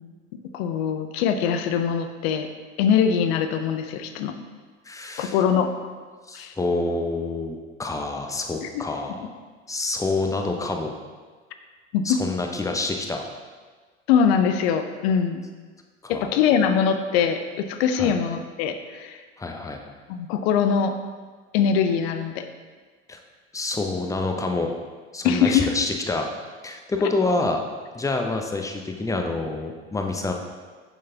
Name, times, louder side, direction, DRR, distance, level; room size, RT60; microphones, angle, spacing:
voice 1, 0.5-2.5 2.8-4.3 5.2-5.9 6.3-6.5 8.6-8.9 11.9-12.2 14.1-15.4 16.1-19.2 20.1-20.9 21.5-22.5 25.2-25.7, left 7 dB, 60° left, 8 dB, 0.7 m, -22 dB
voice 2, 4.9-5.3 6.3-9.2 9.7-10.9 12.0-13.2 16.0-16.3 18.0-18.1 19.4-19.8 23.1-23.2 23.5-24.7 25.1-26.3 26.6-27.6 27.9-30.3, left 3 dB, 10° left, 3 dB, 0.7 m, -27 dB
6.9 x 6.6 x 2.8 m, 1.5 s
figure-of-eight pair, 70°, 36 cm